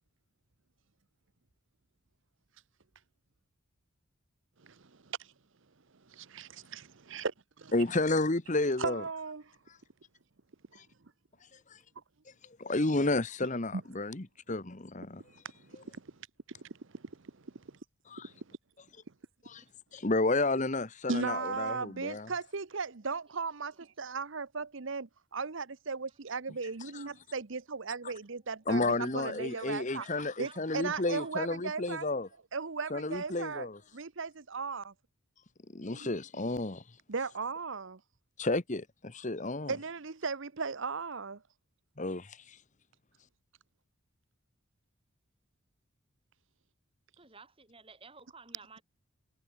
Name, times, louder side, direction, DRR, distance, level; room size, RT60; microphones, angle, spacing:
voice 1, 6.1-7.7 8.8-9.4 15.7-16.0 16.9-17.0 21.1-30.1 30.4-32.1 32.5-33.7 33.9-34.9 35.9-36.1 37.1-38.0 39.7-41.4, right 4 dB, 60° right, 0.9 m, -37 dB
voice 2, 7.7-9.0 11.7-11.8 12.6-15.2 18.1-18.3 19.4-19.6 19.9-22.3 26.9-27.1 28.7-32.3 32.9-33.8 35.7-36.8 38.4-39.7 42.0-42.6, left 2 dB, 35° left, 1.1 m, -31 dB
voice 3, 29.8-31.3 47.2-48.8, right 4 dB, 25° right, 6.6 m, -54 dB
head